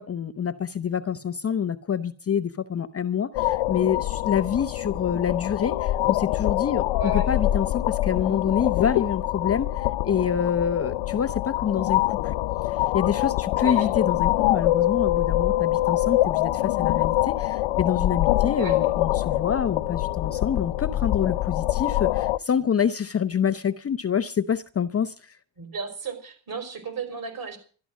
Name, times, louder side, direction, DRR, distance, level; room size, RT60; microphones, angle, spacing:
voice 1, 0.0-12.3 12.7-25.3, left 8 dB, 30° left, 0.7 m, -27 dB
sound 1, 3.3-22.4, left 15 dB, 90° left, 0.6 m, -24 dB
voice 2, 13.6-13.9 18.6-18.8 25.6-27.6, right 5 dB, 45° right, 5.3 m, -34 dB
12.5 x 12.0 x 6.3 m
cardioid pair, 115°, 48 cm